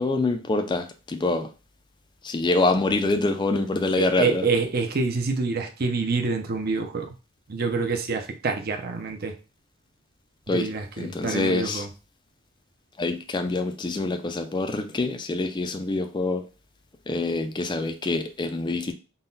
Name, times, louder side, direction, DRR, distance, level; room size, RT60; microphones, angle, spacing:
voice 1, 0.0-1.5 2.2-4.5 10.5-10.7 11.0-11.9 13.0-16.5 17.1-18.9, left 3 dB, 20° left, 0.4 m, -25 dB
voice 2, 4.0-7.1 7.5-9.3 10.5-11.9, right 4 dB, 45° right, 0.6 m, -27 dB
3.8 x 2.2 x 3.9 m
head